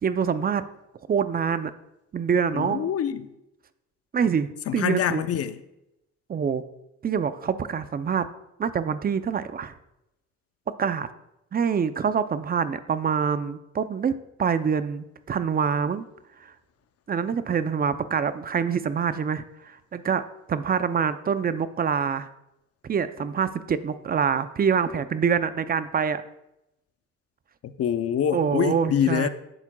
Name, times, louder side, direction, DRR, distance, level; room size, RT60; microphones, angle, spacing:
voice 1, 0.0-0.6 1.1-1.7 2.1-2.9 4.1-5.2 6.3-6.6 7.0-8.3 8.6-9.7 10.8-11.1 11.5-16.1 16.4-16.5 17.1-20.2 20.5-22.3 22.8-26.2 28.3-29.3, right 7 dB, 30° right, 0.5 m, -25 dB
voice 2, 2.5-3.3 4.7-5.6 27.6-29.3, left 9 dB, 50° left, 0.6 m, -25 dB
10.5 x 7.3 x 2.3 m
cardioid pair, 90°, 30 cm